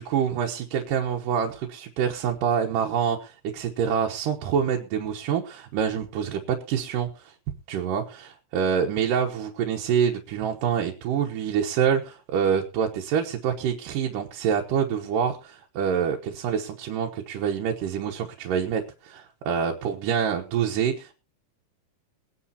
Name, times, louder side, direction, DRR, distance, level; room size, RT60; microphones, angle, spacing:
voice 1, 0.0-7.3 7.7-21.1, right 7 dB, 90° right, 1 dB, 2.7 m, -26 dB
22.0 x 10.0 x 2.9 m, 0.32 s
omnidirectional pair, 3.8 m